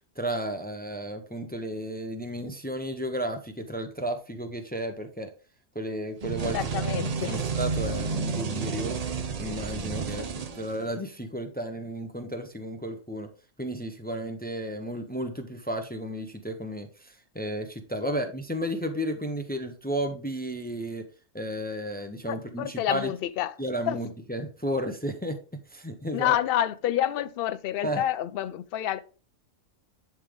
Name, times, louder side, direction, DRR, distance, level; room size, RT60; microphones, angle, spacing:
voice 1, 0.2-5.3 5.7-6.8 7.3-9.0 9.4-13.3 13.6-21.0 21.3-23.1 23.6-25.4 25.7-26.4 27.8-28.0, equal, 10° left, 0.4 m, -33 dB
sound 1, 6.2-11.1, right 5 dB, 45° right, 0.5 m, -31 dB
voice 2, 6.5-7.4 10.0-10.3 18.0-18.2 22.3-23.6 23.9-24.0 26.1-29.0, left 12 dB, 60° left, 0.6 m, -28 dB
10.5 x 3.5 x 3.6 m
omnidirectional pair, 1.4 m